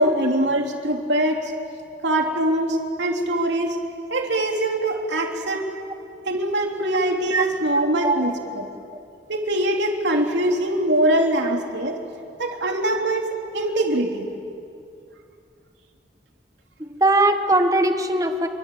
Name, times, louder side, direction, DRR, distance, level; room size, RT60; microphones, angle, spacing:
voice 1, 0.0-1.5 2.0-3.8 4.1-5.7 6.2-8.7 9.3-12.0 12.4-14.3, right 1 dB, 90° right, 2 dB, 3.3 m, -23 dB
voice 2, 16.8-18.5, right 2 dB, 20° right, 7 dB, 1.4 m, -20 dB
27.5 x 24.5 x 8.7 m, 2.5 s
head